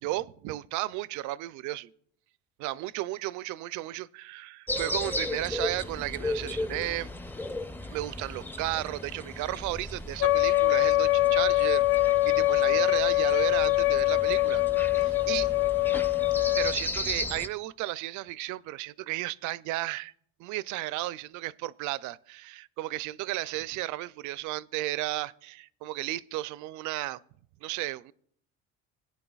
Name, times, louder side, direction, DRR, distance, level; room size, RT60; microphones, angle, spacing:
voice 1, 0.0-1.9 2.6-7.1 7.9-14.6 15.0-15.5 16.6-20.1 20.4-27.2 27.6-28.1, right 17 dB, 70° right, 0.5 m, -34 dB
sound 1, 4.7-17.5, left 2 dB, 5° left, 0.5 m, -36 dB
Wind instrument woodwind instrument, 10.2-16.8, left 18 dB, 50° left, 0.5 m, -24 dB
18.0 x 9.4 x 2.3 m
supercardioid pair, 95°, 31 cm